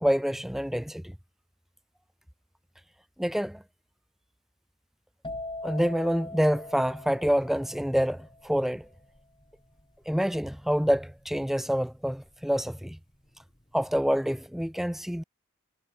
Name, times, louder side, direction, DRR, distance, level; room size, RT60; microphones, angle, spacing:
voice 1, 0.0-1.1 3.2-3.6 5.6-8.9 10.1-13.0 13.7-15.2, equal, ahead, 0.3 m, -27 dB
sound 1, 5.2-12.8 13.1-13.6, left 2 dB, 25° left, 4.4 m, -43 dB
head